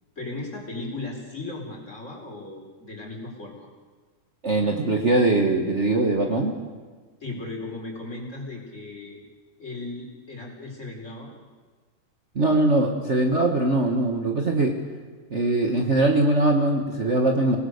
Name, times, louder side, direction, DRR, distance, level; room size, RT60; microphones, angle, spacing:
voice 1, 0.2-3.7 7.2-9.2 9.6-11.3, left 2 dB, 20° left, 0 dB, 4.5 m, -36 dB
voice 2, 4.4-6.5 12.3-14.8 15.3-17.6, right 2 dB, 60° right, 2 dB, 0.7 m, -21 dB
28.5 x 19.0 x 6.7 m, 1.4 s
omnidirectional pair, 3.8 m